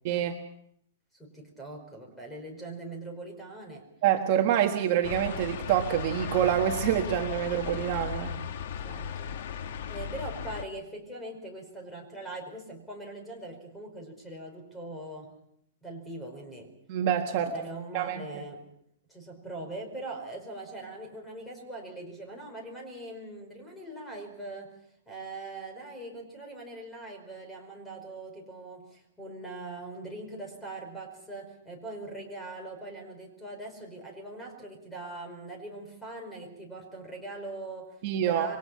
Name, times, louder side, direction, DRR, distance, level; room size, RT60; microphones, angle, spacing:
voice 1, 0.0-0.4 4.0-8.3 16.9-17.5 17.9-18.4 38.0-38.5, right 10 dB, 35° right, 2 dB, 1.5 m, -26 dB
voice 2, 1.2-3.9 8.2-9.4 9.9-15.3 15.8-16.7 17.4-18.6 19.1-24.7 25.1-38.6, right 2 dB, 5° left, 2 dB, 5.0 m, -42 dB
sound 1, 5.0-10.7, left 7 dB, 50° left, 1.6 m, -36 dB
28.0 x 23.5 x 5.8 m, 0.70 s
hypercardioid pair, 175°, 0 cm